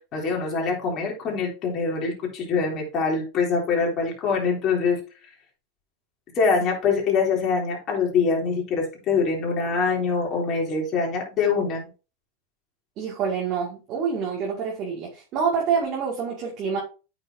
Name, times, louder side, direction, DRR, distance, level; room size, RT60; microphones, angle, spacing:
voice 1, 0.1-5.0 6.3-11.9, left 5 dB, 35° left, -1 dB, 3.5 m, -24 dB
voice 2, 13.0-16.8, right 6 dB, 45° right, -2 dB, 2.4 m, -27 dB
8.7 x 6.0 x 2.8 m, 0.32 s
supercardioid pair, 130°, 0 cm